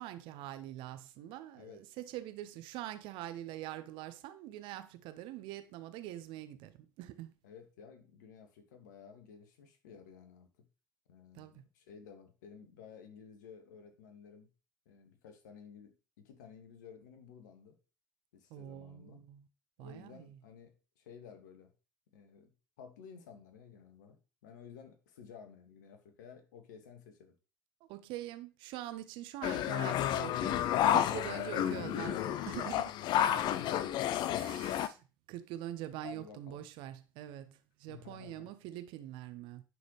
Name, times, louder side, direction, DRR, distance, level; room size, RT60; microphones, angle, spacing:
voice 1, 0.0-7.3 11.3-11.6 18.5-19.5 19.8-20.4 27.9-32.9 34.4-39.6, right 13 dB, 55° right, 0.7 m, -44 dB
voice 2, 7.4-10.5 11.1-14.5 14.9-17.8 18.3-19.2 19.8-21.7 22.1-22.5 22.8-24.2 24.4-27.3 33.1-34.4 36.0-36.6 37.9-38.5, left 7 dB, 65° left, 1.1 m, -53 dB
sound 1, 29.4-34.9, left 11 dB, 45° left, 0.4 m, -31 dB
9.9 x 3.9 x 3.1 m
figure-of-eight pair, 60°, 10 cm